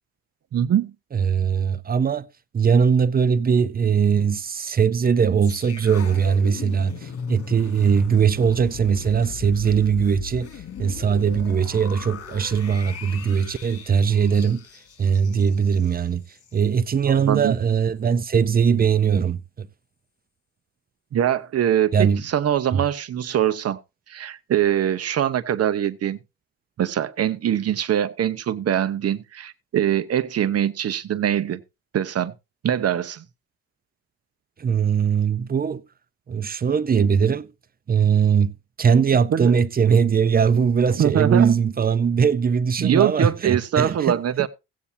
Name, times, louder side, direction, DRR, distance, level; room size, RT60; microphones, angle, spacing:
voice 1, 0.5-0.9 17.0-17.6 21.1-23.8 24.1-26.2 26.8-31.6 31.9-32.3 32.6-33.2 39.3-39.5 40.9-41.5 42.8-44.5, right 10 dB, 55° right, 0.9 m, -23 dB
voice 2, 1.1-2.3 2.5-10.5 10.8-14.6 15.0-16.2 16.5-19.7 21.9-22.2 22.7-22.8 34.6-35.8 36.3-37.5 37.9-44.5, right 6 dB, 30° right, 0.6 m, -20 dB
sound 1, 5.4-16.6 16.9-17.1, left 6 dB, 50° left, 3.1 m, -38 dB
16.5 x 8.5 x 2.7 m
cardioid pair, 90°, 30 cm